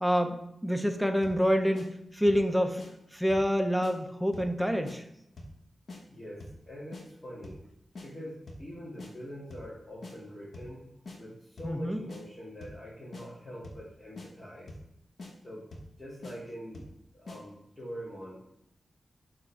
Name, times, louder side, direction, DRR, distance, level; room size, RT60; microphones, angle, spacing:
voice 1, 0.0-2.8 3.1-5.0 11.6-12.0, equal, ahead, 5 dB, 0.7 m, -27 dB
sound 1, 1.2-1.5 1.7-1.9 2.3-2.5 2.8-2.9 3.3-3.5 3.8-3.9 4.3-4.6 4.8-5.0 5.4-5.6 5.9-6.0 6.4-6.6 6.9-7.0 7.4-7.7 8.0-8.1 8.5-8.7 9.0-9.1 9.5-9.7 10.0-10.1 10.5-10.8 11.1-11.2 11.6-11.8 12.1-12.2 12.6-12.8 13.1-13.3 13.6-13.9 14.2-14.3 14.7-14.9 15.2-15.3 15.7-15.9 16.2-16.4 16.7-17.0 17.3-17.4, left 2 dB, 60° left, 1.2 m, -44 dB
voice 2, 6.1-7.6 8.0-10.9 11.2-14.7 15.4-15.7 15.9-16.9 17.1-18.6, equal, 20° left, -9 dB, 2.0 m, -44 dB
6.5 x 3.7 x 4.6 m, 0.78 s
wide cardioid pair, 100°, 0 cm